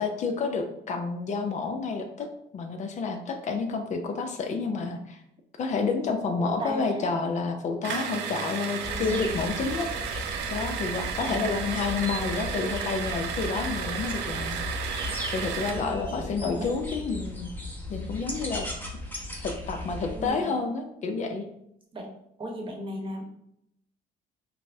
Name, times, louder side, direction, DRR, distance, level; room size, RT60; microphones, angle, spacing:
voice 1, 0.0-2.3 2.5-5.2 5.6-14.6 15.3-17.5 17.9-18.7 19.4-21.4, left 4 dB, 45° left, 5 dB, 0.5 m, -29 dB
voice 2, 6.4-7.1 8.9-9.3 11.2-11.5 15.7-16.9 20.1-20.5 21.9-22.1 22.4-23.2, equal, 30° right, 1 dB, 0.9 m, -36 dB
sound 1, 7.8-15.9, right 7 dB, 85° right, 0.5 m, -33 dB
sound 2, 8.8-20.3, left 2 dB, 10° left, 0.7 m, -37 dB
5.4 x 2.0 x 2.7 m, 0.77 s
cardioid pair, 110°, 17 cm